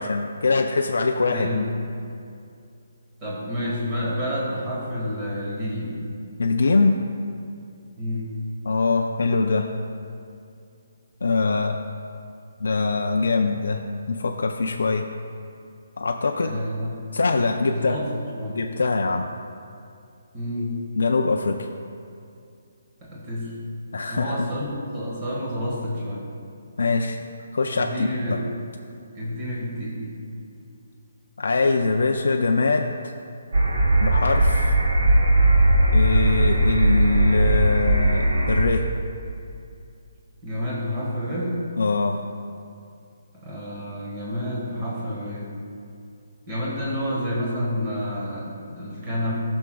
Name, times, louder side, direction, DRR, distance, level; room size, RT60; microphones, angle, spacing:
voice 1, 0.0-1.7 6.4-7.0 8.6-9.7 11.2-11.8 12.6-15.0 16.0-16.6 17.1-18.0 18.5-19.3 21.0-21.7 23.9-24.5 26.8-27.2 27.5-28.4 31.4-33.1 34.0-34.8 35.9-38.8 41.8-42.2, left 3 dB, 80° left, 3 dB, 0.4 m, -23 dB
voice 2, 1.3-1.8 3.2-6.0 8.0-8.3 16.4-17.1 17.6-18.6 20.3-20.9 23.0-23.6 24.1-26.3 27.7-28.4 29.1-30.1 40.4-41.6 43.3-45.5 46.5-49.3, equal, 20° right, -5 dB, 1.5 m, -29 dB
sound 1, 33.5-38.7, right 1 dB, 75° right, 1.1 m, -19 dB
16.0 x 6.1 x 2.3 m, 2.5 s
hypercardioid pair, 180°, 0 cm